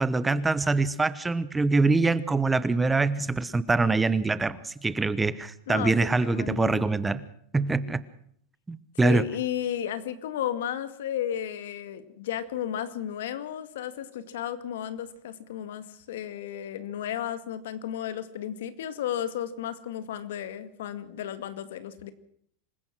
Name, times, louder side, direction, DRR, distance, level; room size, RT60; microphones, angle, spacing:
voice 1, 0.0-7.2 7.5-8.0 8.7-9.3, right 3 dB, 10° right, 16 dB, 1.0 m, -24 dB
voice 2, 5.7-6.8 9.0-22.1, left 10 dB, 80° left, 12 dB, 2.1 m, -33 dB
26.5 x 16.0 x 6.2 m, 0.64 s
supercardioid pair, 150°, 0 cm